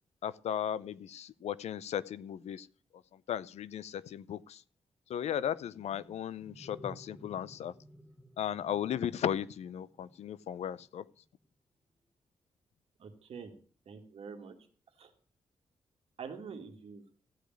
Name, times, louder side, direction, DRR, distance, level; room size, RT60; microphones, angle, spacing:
voice 1, 0.2-2.7 3.1-4.6 5.1-7.7 8.4-11.1, left 9 dB, 85° left, 18 dB, 0.6 m, -36 dB
sound 1, 5.6-10.9, equal, ahead, 1.2 m, -55 dB
voice 2, 13.0-13.5 13.9-14.5 15.0-15.1 16.2-17.0, right 6 dB, 65° right, 3 dB, 2.2 m, -45 dB
15.0 x 5.0 x 9.1 m, 0.43 s
wide cardioid pair, 130°, 11 cm